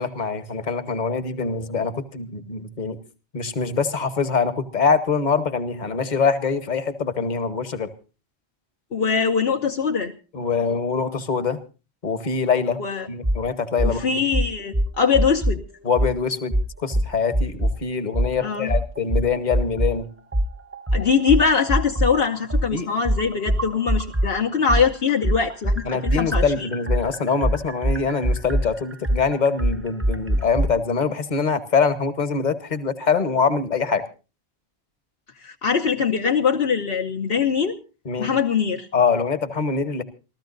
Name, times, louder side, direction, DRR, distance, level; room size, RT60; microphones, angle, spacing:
voice 1, 0.0-3.0 3.3-7.9 10.3-11.6 12.0-12.8 13.1-14.2 15.8-16.5 16.8-20.1 22.7-22.9 25.8-34.1 38.0-38.3 38.9-40.0, left 5 dB, 45° left, 11 dB, 1.3 m, -24 dB
voice 2, 8.9-10.1 12.8-13.1 13.8-15.6 18.4-18.8 20.9-26.7 35.4-37.8 38.2-38.9, left 6 dB, 65° left, 2 dB, 1.1 m, -22 dB
sound 1, 13.2-13.4 13.8-14.0 14.3-15.6 16.0-16.1 16.5-17.8 18.1-18.3 18.7-20.0 20.3-24.3 24.7-30.7, equal, 15° right, 0.6 m, -22 dB
28.5 x 13.5 x 2.6 m, 0.33 s
omnidirectional pair, 1.1 m